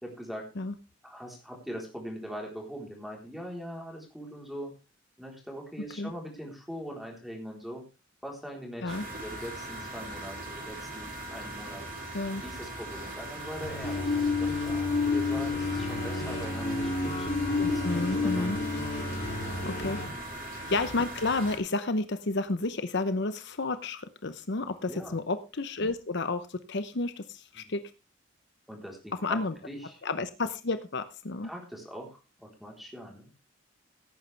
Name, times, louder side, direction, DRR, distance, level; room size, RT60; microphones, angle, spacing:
voice 1, 0.0-0.5 1.0-4.7 5.2-7.8 8.2-11.8 12.4-17.3 17.7-18.6 20.1-20.3 24.9-25.2 27.6-27.7 28.7-29.4 29.7-30.0 31.4-33.3, equal, ahead, 0 dB, 3.9 m, -42 dB
sound 1, 8.9-21.6, right 1 dB, 45° right, 4.1 m, -40 dB
sound 2, 13.6-20.1, left 3 dB, 40° left, 6.6 m, -30 dB
voice 2, 17.6-18.6 19.6-20.0 20.5-27.8 29.2-29.6 30.0-31.5, left 3 dB, 60° left, 11 dB, 0.8 m, -31 dB
17.0 x 9.2 x 3.4 m, 0.30 s
head